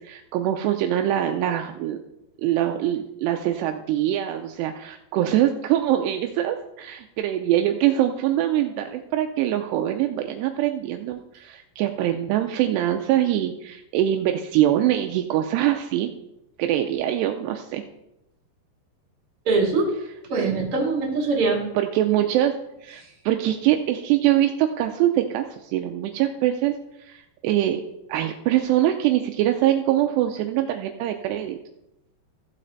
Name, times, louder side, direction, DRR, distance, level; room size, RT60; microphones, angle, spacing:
voice 1, 0.0-2.0 2.4-16.1 16.6-17.8 20.4-20.5 21.8-22.5 22.8-27.8 28.1-31.6, right 12 dB, 80° right, 5 dB, 2.7 m, -23 dB
voice 2, 19.4-19.9 20.3-21.6 23.0-23.1, right 3 dB, 35° right, -1 dB, 2.9 m, -22 dB
15.0 x 7.5 x 4.0 m, 0.88 s
omnidirectional pair, 5.0 m